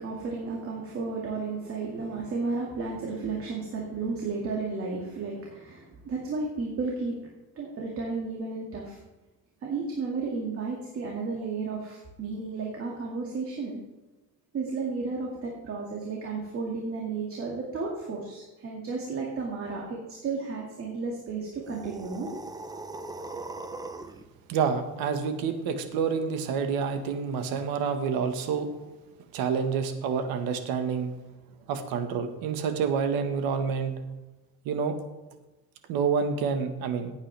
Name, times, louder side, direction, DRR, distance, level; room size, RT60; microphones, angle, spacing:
voice 1, 0.0-7.2 7.6-9.0 9.6-13.8 14.5-22.3, right 4 dB, 40° right, -2 dB, 2.2 m, -33 dB
sound 1, 21.6-24.2, right 2 dB, 10° right, 0.6 m, -39 dB
voice 2, 24.5-28.7 29.3-31.1 31.7-33.9 34.6-35.0 35.9-37.1, right 6 dB, 90° right, 7 dB, 1.6 m, -28 dB
15.5 x 9.0 x 3.4 m, 1.1 s
cardioid pair, 145°, 35 cm